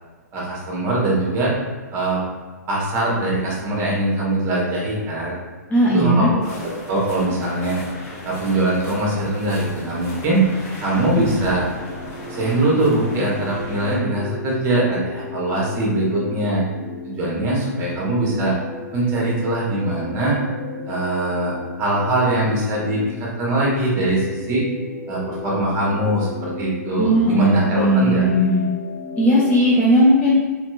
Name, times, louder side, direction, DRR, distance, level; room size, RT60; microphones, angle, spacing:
voice 1, 0.3-1.5 1.9-2.2 2.7-5.4 5.9-7.8 8.2-10.5 10.8-11.7 12.3-16.6 17.0-18.5 18.9-20.4 20.8-24.6 25.1-28.2, right 2 dB, 25° right, -4 dB, 1.0 m, -22 dB
voice 2, 5.7-6.3 27.0-28.6 29.2-30.4, equal, 15° left, -6 dB, 0.4 m, -17 dB
sound 1, 6.4-14.0, left 1 dB, 40° left, 0.8 m, -36 dB
sound 2, 11.6-29.8, left 4 dB, 70° left, 1.2 m, -35 dB
3.1 x 2.8 x 2.3 m, 1.4 s
figure-of-eight pair, 110°, 9 cm